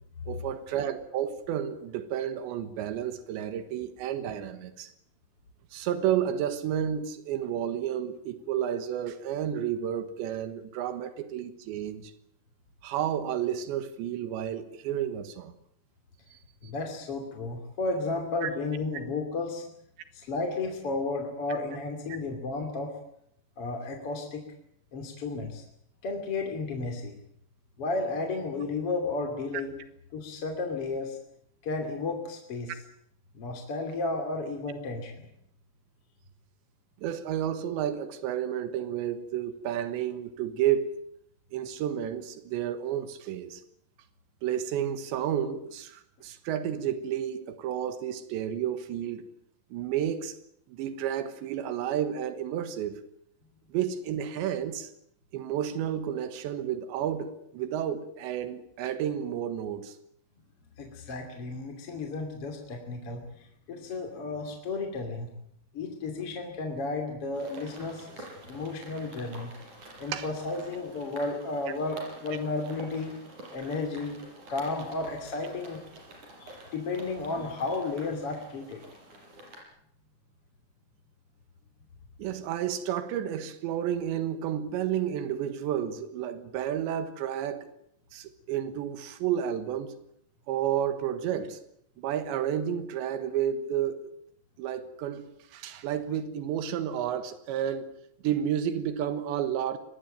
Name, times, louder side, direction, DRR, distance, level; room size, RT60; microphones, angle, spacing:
voice 1, 0.3-4.9 5.7-12.1 12.8-15.6 16.3-16.4 18.4-18.5 37.0-40.9 41.5-43.6 44.4-49.3 49.7-50.4 50.7-53.0 53.7-54.9 55.3-60.0 70.1-70.3 82.2-87.7 88.1-90.0 90.5-91.6 92.0-94.1 94.6-97.9 98.2-99.8, right 10 dB, 90° right, 3.7 m, -31 dB
voice 2, 16.6-19.6 20.1-22.9 23.6-24.5 24.9-25.6 26.0-27.1 27.8-29.8 30.1-31.2 31.6-32.8 33.3-35.3 60.8-65.3 65.7-69.5 70.0-73.1 73.5-74.2 74.5-75.8 76.4-78.8, left 3 dB, 35° left, 3.1 m, -33 dB
sound 1, 67.3-79.6, right 1 dB, 45° right, 6.9 m, -48 dB
23.5 x 19.5 x 9.1 m
omnidirectional pair, 5.0 m